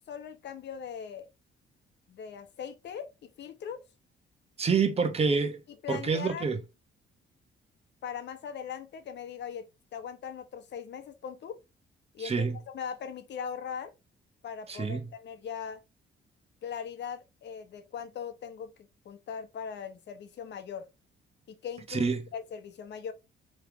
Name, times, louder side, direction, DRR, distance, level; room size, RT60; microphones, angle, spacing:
voice 1, 0.1-1.3 2.1-3.8 5.8-6.5 8.0-11.6 12.1-13.9 14.4-15.8 16.6-20.9 21.5-23.1, left 7 dB, 60° left, 0.8 m, -40 dB
voice 2, 4.6-5.6 5.9-6.6 12.2-12.6 14.7-15.1 21.9-22.2, right 5 dB, 30° right, 1.0 m, -27 dB
3.4 x 3.2 x 4.6 m
cardioid pair, 90°, 20 cm